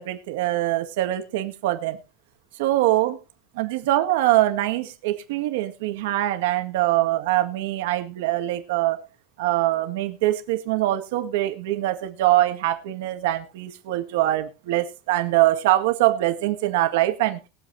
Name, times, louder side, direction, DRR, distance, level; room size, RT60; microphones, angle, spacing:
voice 1, 0.0-2.0 2.6-3.2 3.6-9.0 9.4-17.4, right 15 dB, 80° right, 1.8 m, -23 dB
22.0 x 7.6 x 2.7 m
supercardioid pair, 165°, 0 cm